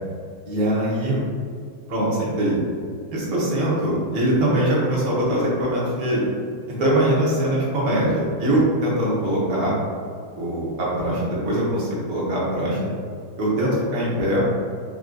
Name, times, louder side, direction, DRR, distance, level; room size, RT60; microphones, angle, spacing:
voice 1, 0.4-1.2 1.9-2.6 3.1-6.3 6.7-9.8 10.3-12.9 13.4-14.4, right 1 dB, 65° right, -6 dB, 1.3 m, -22 dB
3.4 x 2.2 x 2.5 m, 2.1 s
omnidirectional pair, 1.7 m